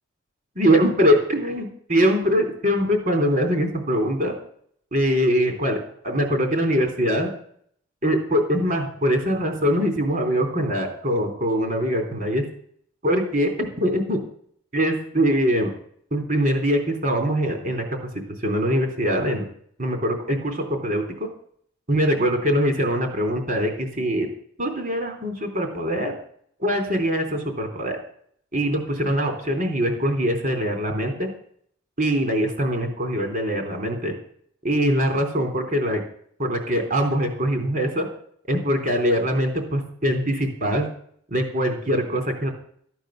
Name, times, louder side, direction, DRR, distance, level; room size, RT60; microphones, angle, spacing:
voice 1, 0.6-4.3 4.9-7.3 8.0-12.5 13.0-14.2 14.7-15.7 16.1-17.8 18.4-19.5 19.8-21.3 21.9-24.3 24.6-26.1 26.6-28.0 28.5-31.3 32.0-34.1 34.6-36.0 36.4-38.1 38.5-40.9 41.3-42.5, equal, 45° right, 4 dB, 3.5 m, -22 dB
14.5 x 9.1 x 6.5 m, 0.62 s
head